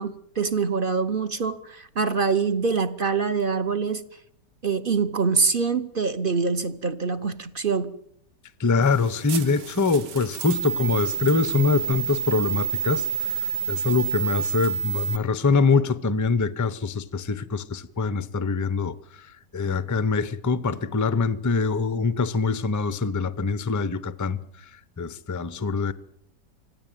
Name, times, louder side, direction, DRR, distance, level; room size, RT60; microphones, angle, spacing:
voice 1, 0.0-4.0 4.6-7.9, right 5 dB, 40° right, 1.0 m, -25 dB
voice 2, 8.6-13.3 13.7-19.0 19.5-24.4 25.0-25.9, left 4 dB, 25° left, 0.3 m, -24 dB
sound 1, 8.8-15.2, right 7 dB, 85° right, 1.8 m, -29 dB
25.5 x 15.5 x 9.1 m
omnidirectional pair, 1.8 m